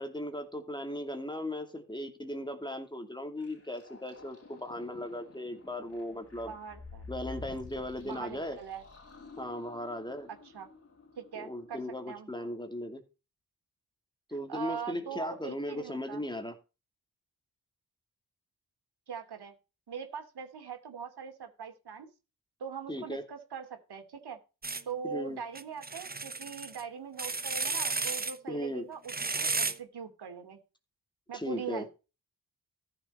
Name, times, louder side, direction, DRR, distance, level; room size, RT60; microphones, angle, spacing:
voice 1, 0.0-6.5 7.1-8.6 9.4-10.3 11.3-13.0 14.3-16.5 22.9-23.2 25.0-25.4 28.5-28.9 31.3-31.8, left 1 dB, 10° left, 6 dB, 2.6 m, -37 dB
sound 1, 3.4-11.9, left 3 dB, 40° left, 3.8 m, -50 dB
voice 2, 6.5-7.1 8.0-8.8 10.3-10.7 11.2-12.3 14.5-16.2 19.1-19.5 19.9-22.1 22.6-24.4 24.9-30.6 31.3-31.9, right 6 dB, 90° right, 5 dB, 2.8 m, -41 dB
sound 2, 24.6-24.8 25.5-26.8 27.2-28.4 29.1-29.8, right 3 dB, 25° right, 1.0 m, -33 dB
14.0 x 6.7 x 4.3 m, 0.30 s
wide cardioid pair, 100°, 38 cm